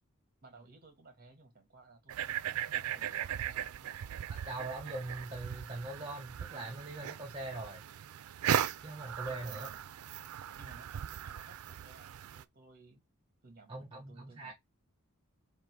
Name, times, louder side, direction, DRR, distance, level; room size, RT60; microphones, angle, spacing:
voice 1, 0.4-4.0 9.3-9.9 10.6-13.0 13.4-14.5, right 2 dB, 45° right, 1.3 m, -57 dB
sound 1, 2.1-12.4, right 10 dB, 90° right, 0.4 m, -38 dB
voice 2, 4.3-7.8 8.8-9.7 13.7-14.5, right 2 dB, 25° right, 0.7 m, -42 dB
3.7 x 2.5 x 4.5 m
head